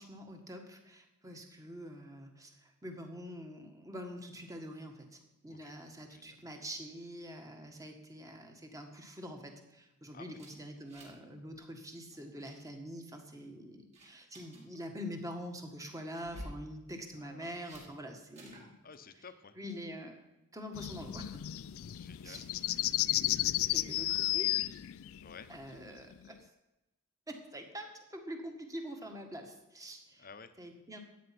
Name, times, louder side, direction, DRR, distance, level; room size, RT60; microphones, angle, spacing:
voice 1, 0.0-18.7 19.5-20.2 20.5-21.5 22.2-22.6 23.7-24.5 25.5-26.5 27.3-30.3 30.6-31.0, equal, 15° right, 4 dB, 1.7 m, -45 dB
voice 2, 6.1-6.4 10.1-10.4 17.2-17.6 18.8-19.6 22.0-22.5 25.2-25.5 30.2-30.6, left 5 dB, 40° left, 11 dB, 0.8 m, -52 dB
sound 1, 10.4-11.3 11.5-11.8 12.1-12.6 13.1-13.5 13.9-14.6 16.2-16.6 17.6-17.9 18.4-18.7, equal, 30° right, 4.5 m, -50 dB
sound 2, 20.8-26.3, left 15 dB, 65° left, 0.4 m, -33 dB
13.0 x 9.3 x 5.9 m, 0.95 s
head